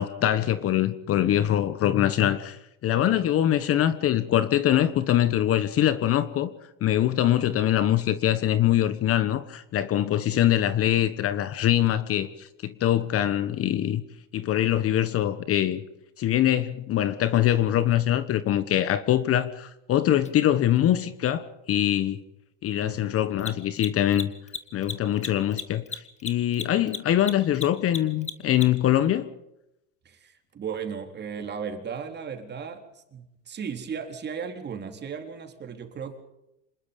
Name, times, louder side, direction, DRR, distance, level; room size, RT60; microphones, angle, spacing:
voice 1, 0.0-6.5 6.8-14.0 14.3-15.8 16.2-22.2 22.6-24.3 24.7-29.3, left 11 dB, 35° left, 1.4 m, -23 dB
Mechanisms, 20.2-20.3 23.3-28.9, left 5 dB, 20° left, 2.0 m, -35 dB
voice 2, 22.8-23.2 30.1-36.2, right 6 dB, 25° right, 3.8 m, -36 dB
26.5 x 20.5 x 5.4 m
supercardioid pair, 120°, 38 cm